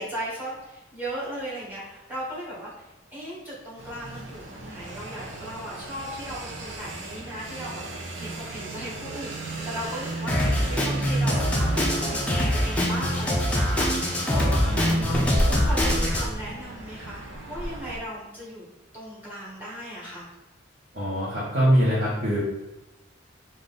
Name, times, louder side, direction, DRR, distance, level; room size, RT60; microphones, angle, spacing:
voice 1, 0.0-14.8 15.4-18.6 18.9-20.3, equal, 10° right, -6 dB, 1.2 m, -37 dB
sound 1, 3.8-18.0, right 1 dB, 75° right, 0.6 m, -35 dB
Drum kit, 10.3-16.3, equal, 5° left, 0.5 m, -24 dB
voice 2, 14.6-15.3 20.9-22.4, equal, 50° right, -9 dB, 1.1 m, -24 dB
3.7 x 2.5 x 3.8 m, 1.0 s
head